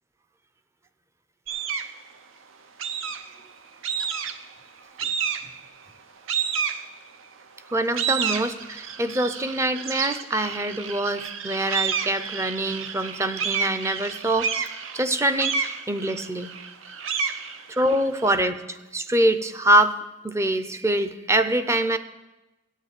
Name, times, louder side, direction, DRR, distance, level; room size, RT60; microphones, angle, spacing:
sound 1, 1.5-2.0 2.8-3.4 3.8-4.5 5.0-5.7 6.3-7.2 7.7-18.4, right 6 dB, 90° right, 0.7 m, -30 dB
voice 1, 7.7-14.7 14.9-16.6 17.7-20.0 20.2-22.0, right 1 dB, 15° right, 10 dB, 0.5 m, -24 dB
8.5 x 7.3 x 8.2 m, 1.0 s
head